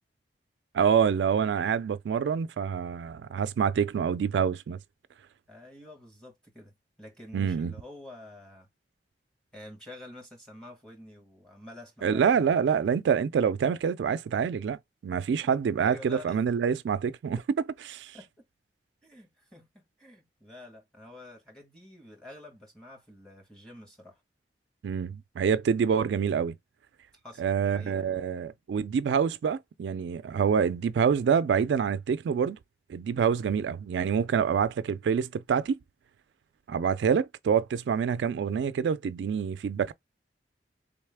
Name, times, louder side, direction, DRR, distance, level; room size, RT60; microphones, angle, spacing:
voice 1, 0.7-4.8 7.3-7.7 12.0-14.8 15.0-17.4 17.9-18.2 24.8-26.5 27.4-32.6 32.9-35.8 36.7-39.9, right 7 dB, 80° right, 0.3 m, -26 dB
voice 2, 5.5-6.7 7.0-8.7 9.5-12.6 15.8-16.4 18.1-18.3 19.0-24.2 27.2-28.0, left 1 dB, 5° left, 1.2 m, -48 dB
3.9 x 3.2 x 3.4 m
head